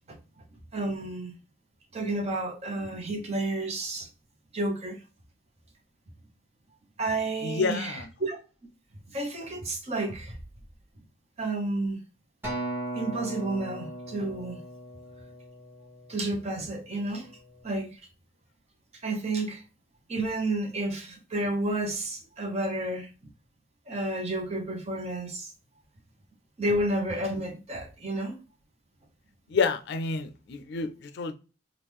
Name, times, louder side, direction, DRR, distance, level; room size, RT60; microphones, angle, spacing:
voice 1, 0.7-1.3 1.9-4.1 4.5-5.0 7.0-8.4 9.1-10.4 11.4-12.0 12.9-14.6 16.1-17.3 17.6-18.0 19.0-19.6 20.1-23.1 23.9-25.5 26.6-28.4, right 2 dB, 35° right, 2 dB, 0.9 m, -31 dB
voice 2, 7.4-8.0 29.5-31.3, left 4 dB, 65° left, 9 dB, 0.4 m, -29 dB
Acoustic guitar, 12.4-16.8 17.5-17.6, right 1 dB, 10° right, 1.3 m, -38 dB
3.6 x 2.4 x 3.0 m, 0.34 s
head